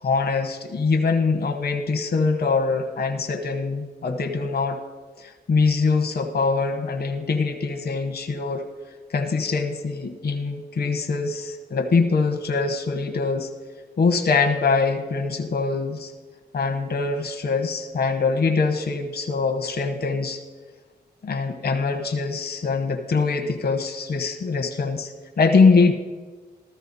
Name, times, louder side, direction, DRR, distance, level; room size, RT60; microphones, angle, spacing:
voice 1, 0.0-4.8 5.2-8.6 9.1-13.5 14.0-16.1 16.5-20.4 21.2-25.9, left 4 dB, 65° left, 5 dB, 1.1 m, -23 dB
14.5 x 13.5 x 4.1 m, 1.4 s
cardioid pair, 75°, 18 cm